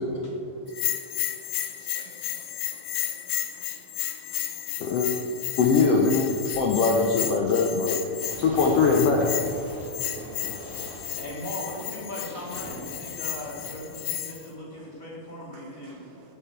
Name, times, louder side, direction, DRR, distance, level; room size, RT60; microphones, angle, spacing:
Bell, 0.7-14.5, left 12 dB, 90° left, 1.4 m, -33 dB
voice 1, 1.8-2.1 3.5-3.7 4.1-4.7 6.5-6.6 8.1-8.4 9.6-11.1 15.5-16.1, right 4 dB, 85° right, 2 dB, 3.0 m, -52 dB
voice 2, 5.6-6.2 6.5-8.0 8.4-9.3, left 4 dB, 70° left, 1 dB, 1.5 m, -21 dB
Fireworks, 8.0-14.0, right 1 dB, 35° right, 2.7 m, -42 dB
voice 3, 11.2-16.1, left 1 dB, 25° left, -5 dB, 2.5 m, -38 dB
8.8 x 7.6 x 8.1 m, 2.4 s
omnidirectional pair, 3.6 m